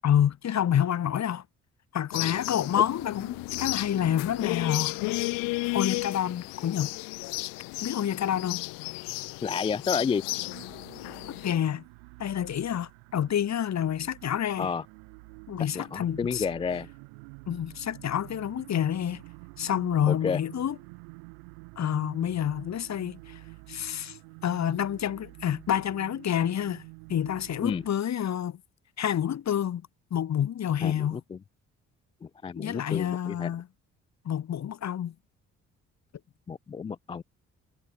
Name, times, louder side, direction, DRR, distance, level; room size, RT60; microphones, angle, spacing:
voice 1, 0.0-1.4 1.9-5.3 5.7-6.9 7.8-8.6 11.4-11.8 12.2-14.7 15.5-16.5 17.5-19.2 19.6-20.8 21.8-23.4 23.7-26.8 27.1-28.6 29.0-29.8 30.1-31.2 32.6-33.7 34.2-35.1, left 10 dB, 45° left, 2.2 m, -28 dB
sound 1, 2.1-11.5, left 26 dB, 60° left, 0.8 m, -33 dB
voice 2, 9.4-10.2 14.6-14.8 15.8-16.9 20.1-20.4 27.6-27.8 30.8-31.2 32.4-33.5 36.5-37.2, left 6 dB, 15° left, 0.3 m, -30 dB
sound 2, 10.3-27.9, right 40 dB or more, 70° right, 2.5 m, -48 dB
figure-of-eight pair, 45°, 37 cm